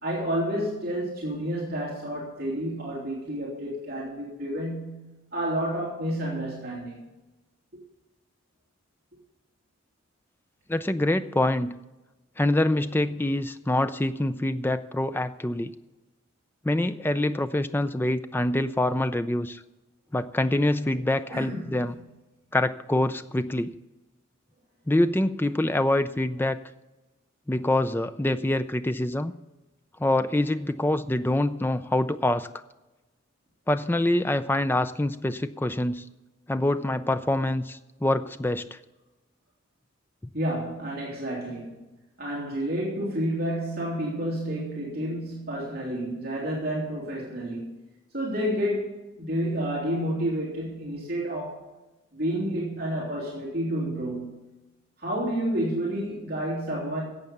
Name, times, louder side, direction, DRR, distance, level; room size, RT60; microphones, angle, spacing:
voice 1, 0.0-7.1 21.3-21.8 40.3-41.8 42.2-47.7 48.1-51.6 52.1-54.5 55.0-57.0, right 1 dB, 50° right, 2.9 m, -30 dB
voice 2, 10.7-11.7 12.4-15.7 16.6-19.6 20.1-22.0 22.5-23.7 24.9-26.6 27.5-29.3 30.0-32.5 33.7-36.0 36.5-38.8, left 1 dB, 10° left, 0.4 m, -25 dB
12.0 x 8.0 x 7.1 m
head